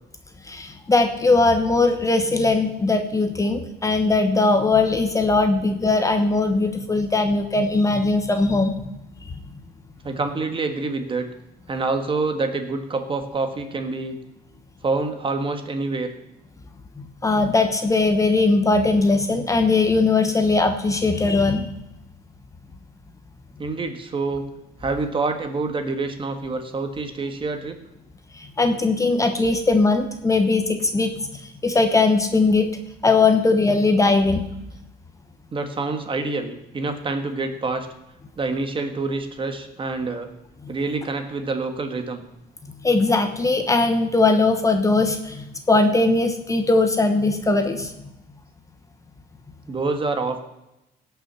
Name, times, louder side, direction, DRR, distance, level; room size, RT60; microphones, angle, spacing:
voice 1, 0.5-8.8 17.2-21.7 28.6-31.1 31.6-32.7 33.0-34.4 42.8-45.4 45.7-47.9, left 3 dB, 20° left, 6 dB, 1.1 m, -19 dB
voice 2, 10.0-11.3 11.7-14.2 14.8-16.1 23.6-24.5 24.8-27.8 35.5-37.9 38.4-40.3 40.7-42.2 49.7-50.4, right 3 dB, 30° right, 6 dB, 1.5 m, -26 dB
17.0 x 5.9 x 5.7 m, 0.89 s
cardioid pair, 110°, 17 cm